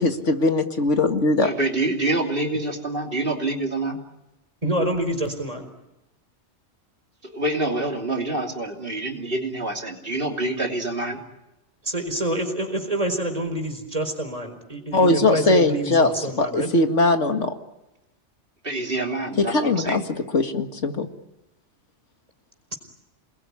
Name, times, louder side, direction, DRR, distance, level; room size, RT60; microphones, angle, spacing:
voice 1, 0.0-1.5 14.9-16.1 16.4-17.5 19.4-20.0 20.3-21.1, left 2 dB, 85° left, 6 dB, 2.3 m, -20 dB
voice 2, 1.4-4.0 7.2-11.2 18.6-20.0, right 2 dB, 50° right, 2 dB, 3.3 m, -26 dB
voice 3, 4.6-5.7 11.8-16.7, right 1 dB, 30° right, 6 dB, 4.6 m, -27 dB
29.0 x 21.0 x 9.8 m, 0.93 s
omnidirectional pair, 1.2 m